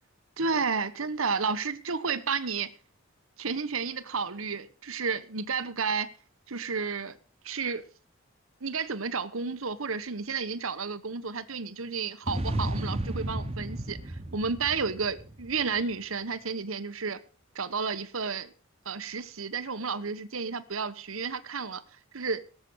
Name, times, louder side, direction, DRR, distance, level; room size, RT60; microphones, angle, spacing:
voice 1, 0.4-2.7 3.4-6.1 6.5-7.2 7.4-7.8 8.6-17.2 17.5-18.5 18.8-21.8 22.1-22.4, right 5 dB, 80° right, 1.2 m, -31 dB
sound 1, 12.3-15.8, right 1 dB, 30° right, 1.3 m, -33 dB
18.0 x 7.8 x 6.3 m
head